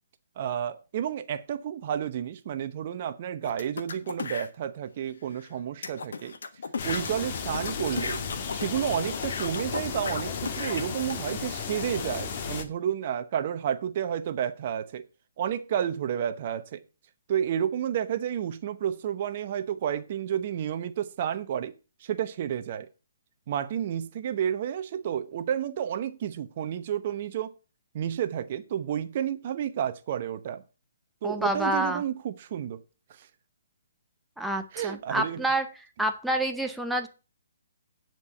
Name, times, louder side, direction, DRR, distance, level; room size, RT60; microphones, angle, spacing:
voice 1, 0.4-6.3 6.8-8.2 8.5-15.0 15.4-16.8 17.3-21.7 22.0-22.9 23.5-27.6 27.9-30.6 31.2-32.8 33.1-33.3 34.7-35.4, right 9 dB, 45° right, 0.8 m, -31 dB
sound 1, 3.4-4.5 5.1-5.2 5.4-5.5 5.8-11.2, left 5 dB, 65° left, 1.4 m, -36 dB
sound 2, 6.8-12.6, left 6 dB, 40° left, 1.5 m, -34 dB
voice 2, 31.2-32.0 34.4-35.7 36.0-37.1, right 1 dB, ahead, 0.8 m, -28 dB
9.6 x 4.6 x 7.7 m
hypercardioid pair, 140°, 0 cm